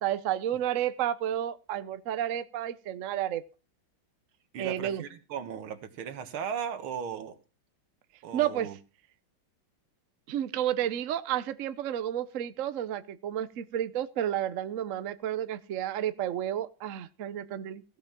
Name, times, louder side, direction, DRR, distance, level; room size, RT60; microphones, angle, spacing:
voice 1, 0.0-3.4 4.6-5.0 8.3-8.7 10.3-17.8, right 11 dB, 60° right, 0.8 m, -31 dB
voice 2, 4.5-7.4 8.2-8.8, right 7 dB, 90° right, 2.2 m, -37 dB
16.0 x 5.6 x 7.4 m
omnidirectional pair, 2.2 m